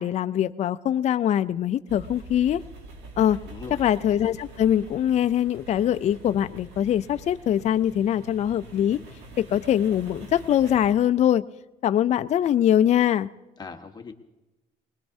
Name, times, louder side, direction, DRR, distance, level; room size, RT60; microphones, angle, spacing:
voice 1, 0.0-2.6 3.2-3.4 3.8-9.0 9.4-11.4 11.8-13.3, left 10 dB, 40° left, 11 dB, 0.4 m, -22 dB
sound 1, 1.9-10.9, right 2 dB, 85° right, 2.0 m, -45 dB
voice 2, 3.4-3.9 13.6-14.1, left 5 dB, 25° left, 4 dB, 1.2 m, -40 dB
21.0 x 19.0 x 2.7 m, 1.0 s
cardioid pair, 110°, 17 cm